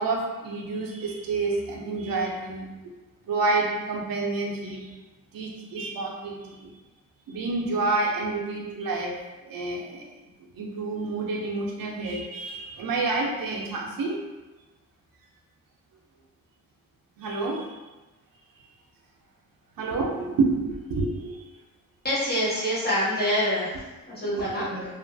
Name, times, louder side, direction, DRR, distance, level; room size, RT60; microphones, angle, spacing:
voice 1, 0.0-2.7 3.3-4.9 5.3-6.7 7.3-9.1 9.4-10.1 10.6-14.2 17.2-17.8 19.8-21.5 24.3-24.8, right 3 dB, 75° right, -1 dB, 0.5 m, -29 dB
voice 2, 22.0-23.7 24.0-24.7, equal, 25° left, -9 dB, 0.9 m, -25 dB
2.7 x 2.3 x 2.5 m, 1.2 s
wide cardioid pair, 175°, 35 cm